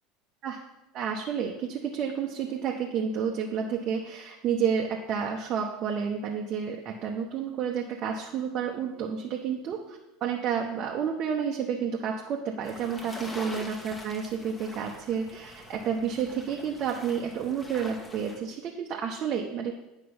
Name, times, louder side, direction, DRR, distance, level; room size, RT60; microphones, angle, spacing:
voice 1, 0.9-19.8, right 7 dB, 40° right, -1 dB, 1.1 m, -30 dB
sound 1, 12.6-18.4, left 1 dB, 15° left, 1.5 m, -44 dB
9.5 x 5.6 x 5.6 m, 0.94 s
figure-of-eight pair, 75°, 0 cm